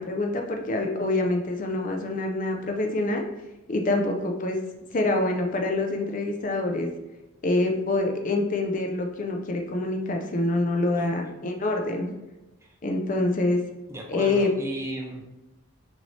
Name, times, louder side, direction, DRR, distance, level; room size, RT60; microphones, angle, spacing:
voice 1, 0.0-3.2 3.7-4.6 4.9-6.9 7.4-12.1 12.8-13.6 14.1-14.5, left 2 dB, 35° left, 3 dB, 0.5 m, -26 dB
voice 2, 13.9-15.2, right 1 dB, 10° right, 0 dB, 0.5 m, -35 dB
6.0 x 2.7 x 3.1 m, 1.0 s
head